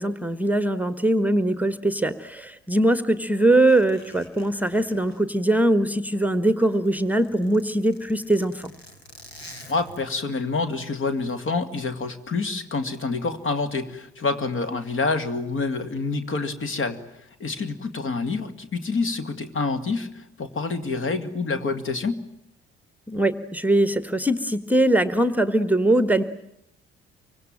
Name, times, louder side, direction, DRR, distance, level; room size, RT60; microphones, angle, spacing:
voice 1, 0.0-8.7 23.1-26.2, right 1 dB, 5° right, 12 dB, 1.4 m, -21 dB
Zipper (clothing), 3.7-6.1 6.4-10.3 11.0-11.3, left 1 dB, 85° left, 2.4 m, -48 dB
voice 2, 9.7-17.0 17.4-22.2, left 3 dB, 40° left, 10 dB, 2.6 m, -27 dB
25.0 x 25.0 x 8.9 m, 0.79 s
figure-of-eight pair, 45°, 30 cm